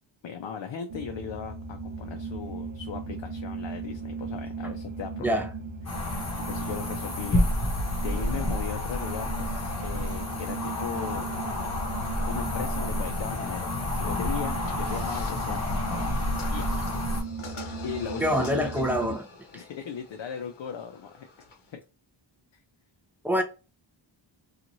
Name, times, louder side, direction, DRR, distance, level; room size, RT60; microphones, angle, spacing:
voice 1, 0.2-5.4 5.9-6.1 6.4-7.5 8.0-11.3 12.3-15.6 15.9-16.2 16.5-16.7 17.8-19.2 19.5-21.3 21.7-21.8, left 7 dB, 70° left, 0.5 m, -37 dB
sound 1, 0.9-19.2, right 3 dB, 65° right, 0.8 m, -37 dB
voice 2, 5.2-5.5 18.2-19.2 19.5-19.6 23.2-23.4, equal, 5° right, 0.4 m, -25 dB
sound 2, 5.8-17.2, left 1 dB, 35° left, 0.8 m, -30 dB
sound 3, 14.6-21.7, left 3 dB, 90° left, 0.9 m, -46 dB
3.0 x 2.4 x 2.6 m
wide cardioid pair, 125°, 47 cm